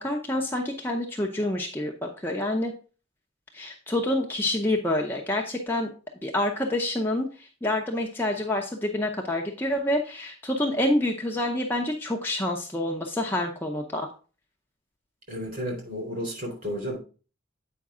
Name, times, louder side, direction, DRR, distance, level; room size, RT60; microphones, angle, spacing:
voice 1, 0.0-2.7 3.5-5.9 6.2-14.1, left 1 dB, 10° left, 0 dB, 0.7 m, -27 dB
voice 2, 15.3-17.0, equal, 45° right, 1 dB, 3.4 m, -32 dB
8.4 x 5.2 x 3.7 m, 0.36 s
head